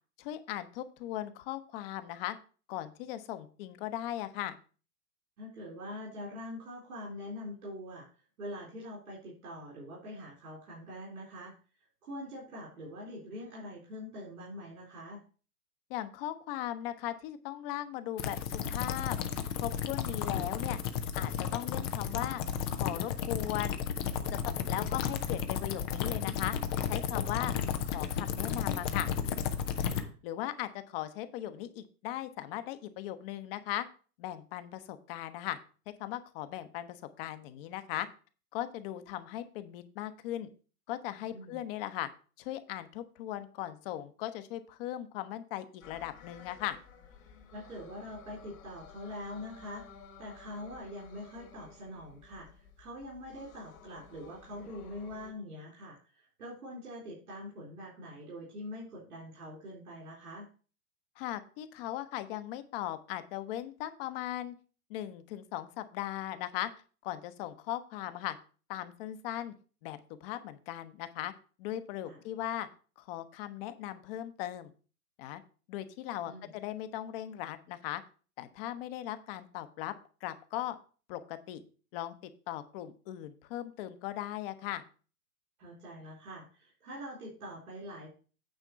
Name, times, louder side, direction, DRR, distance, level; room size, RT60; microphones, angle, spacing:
voice 1, 0.2-2.4 2.7-4.6 15.9-19.2 19.5-20.8 21.1-22.4 22.7-23.8 24.3-24.4 24.7-26.6 26.9-27.5 27.8-29.1 30.2-33.9 34.2-35.6 36.0-38.1 38.5-40.5 40.9-42.1 42.4-46.8 61.2-64.6 64.9-66.7 67.0-68.4 68.7-69.5 69.8-71.3 71.6-72.7 73.0-74.7 75.2-75.4 75.7-78.0 78.4-79.9 80.2-80.8 81.1-81.6 81.9-82.1 82.5-84.8, left 13 dB, 40° left, 11 dB, 1.0 m, -38 dB
voice 2, 5.4-8.1 8.4-11.5 11.8-15.2 29.9-30.1 41.3-41.6 47.5-49.8 50.2-60.5 72.0-72.2 76.2-76.5 85.6-88.1, left 1 dB, 75° right, -3 dB, 3.7 m, -44 dB
sound 1, 18.2-30.0, left 8 dB, 20° left, 0.3 m, -33 dB
sound 2, 45.8-55.3, left 6 dB, 65° left, 2.3 m, -54 dB
9.0 x 3.6 x 6.8 m, 0.38 s
hypercardioid pair, 120°, 45 cm